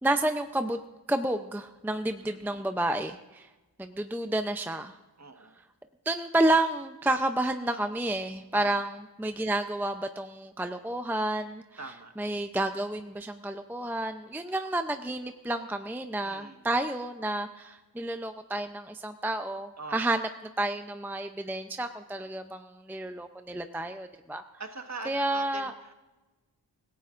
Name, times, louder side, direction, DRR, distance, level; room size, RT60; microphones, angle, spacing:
voice 1, 0.0-0.8 1.1-3.5 3.8-5.0 6.1-8.9 9.2-11.6 12.2-20.3 20.6-24.4 25.1-25.7, right 1 dB, 5° right, 7 dB, 0.6 m, -30 dB
voice 2, 2.2-2.7 5.2-5.6 8.5-8.9 11.8-12.1 16.2-16.6 19.8-20.1 24.6-25.9, right 3 dB, 40° right, 5 dB, 1.5 m, -43 dB
26.0 x 16.0 x 2.6 m, 1.1 s
wide cardioid pair, 65°, 43 cm